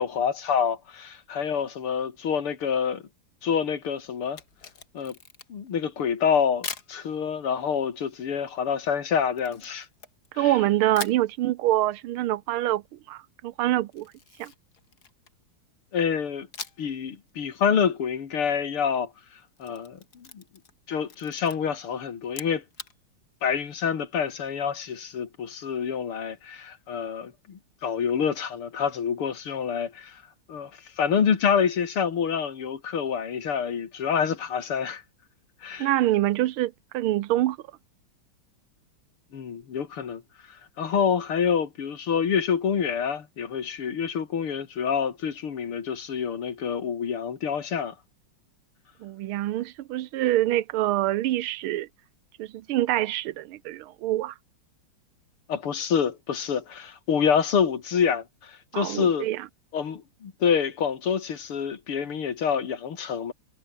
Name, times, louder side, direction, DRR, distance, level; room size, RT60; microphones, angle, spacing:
voice 1, 0.0-3.0 3.4-4.4 4.9-5.1 5.5-9.9 10.3-10.6 15.9-16.5 16.8-19.1 19.6-20.4 20.9-22.6 23.4-30.2 30.5-30.7 31.0-35.0 35.6-35.9 39.3-40.2 40.8-47.9 55.5-59.3 59.7-63.3, left 7 dB, 85° left, 3.1 m, -27 dB
Camera, 4.2-5.7 6.6-6.9 9.4-10.5 10.9-11.3 13.9-15.4 16.5-17.0 17.3-17.4 19.4-20.8 21.1-21.6 22.2-22.9, left 6 dB, 45° left, 2.6 m, -41 dB
voice 2, 10.4-12.8 13.1-14.1 14.4-14.5 35.8-37.6 49.0-51.9 52.4-54.3 58.7-59.5, right 14 dB, 80° right, 1.6 m, -25 dB
omnidirectional pair, 2.4 m